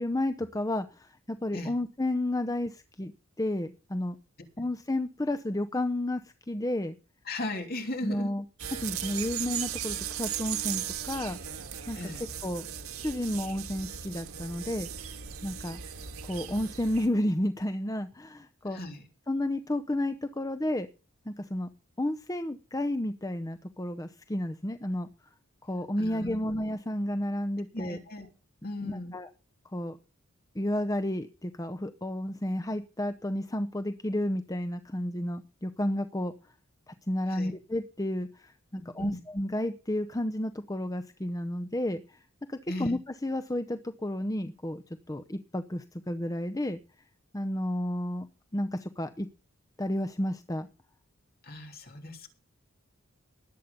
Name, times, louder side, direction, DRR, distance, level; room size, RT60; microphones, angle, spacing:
voice 1, 0.0-3.1 3.4-4.2 4.6-7.0 8.0-8.4 8.8-11.4 11.9-12.7 12.9-14.9 15.4-15.8 16.2-18.8 19.3-20.9 21.3-21.7 22.0-25.1 25.6-28.0 28.8-29.3 29.7-30.0 30.5-36.3 36.9-42.2 42.5-46.8 47.3-48.3 48.5-49.3 49.8-50.7, left 1 dB, 15° left, 8 dB, 0.7 m, -32 dB
voice 2, 7.3-8.4 11.9-12.2 18.7-19.1 26.0-26.4 27.7-28.3 28.6-29.2 37.3-37.5 38.7-39.2 42.7-42.9 51.4-52.3, left 1 dB, 45° left, 4 dB, 3.1 m, -37 dB
sound 1, 8.6-17.1, right 9 dB, 85° right, 1.8 m, -37 dB
19.0 x 8.4 x 5.3 m, 0.34 s
head